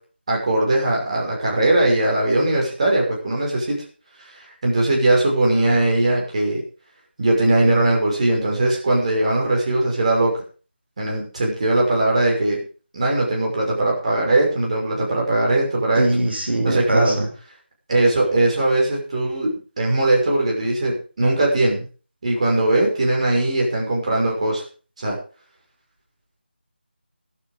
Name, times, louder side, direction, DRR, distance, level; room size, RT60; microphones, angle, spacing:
voice 1, 0.3-3.8 4.2-6.6 7.2-10.3 11.0-12.6 12.9-16.0 16.6-17.2 17.9-19.5 19.8-21.8 22.2-24.6 25.0-25.2, right 2 dB, 35° right, -1 dB, 5.7 m, -20 dB
voice 2, 16.0-17.3, right 1 dB, 65° right, 1 dB, 4.7 m, -21 dB
13.0 x 11.5 x 5.2 m, 0.37 s
figure-of-eight pair, 160°, 6 cm